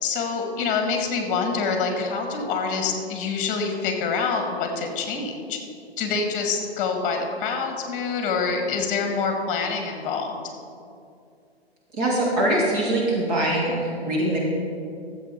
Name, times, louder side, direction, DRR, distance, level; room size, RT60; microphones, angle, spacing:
voice 1, 0.0-5.6 6.0-10.3, left 5 dB, 25° left, 3 dB, 1.8 m, -26 dB
voice 2, 12.0-14.4, right 1 dB, 40° right, -4 dB, 2.5 m, -23 dB
13.5 x 7.7 x 4.5 m, 2.5 s
hypercardioid pair, 130°, 32 cm